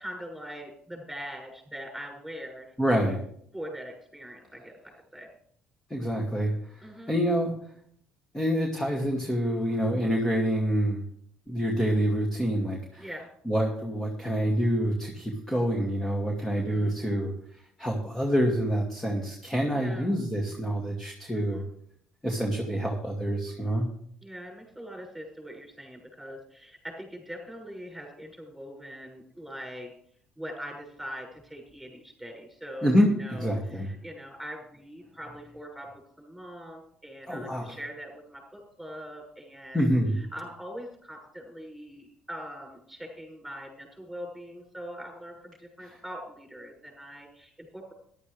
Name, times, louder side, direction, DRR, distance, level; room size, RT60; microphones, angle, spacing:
voice 1, 0.0-2.7 3.5-4.8 5.1-5.3 6.8-7.2 13.0-13.3 16.6-17.0 19.7-20.1 21.3-21.7 24.2-29.9 30.4-35.9 36.2-39.8 40.2-47.9, equal, 5° right, 0 dB, 6.5 m, -42 dB
voice 2, 2.8-3.2 5.9-6.8 7.1-7.5 8.3-11.0 11.5-13.1 13.5-17.3 17.8-21.6 22.2-23.9 32.8-33.9 37.3-37.8 39.7-40.2 45.8-46.0, equal, 10° left, 0 dB, 2.3 m, -27 dB
13.5 x 12.0 x 3.4 m, 0.64 s
supercardioid pair, 85°, 3 cm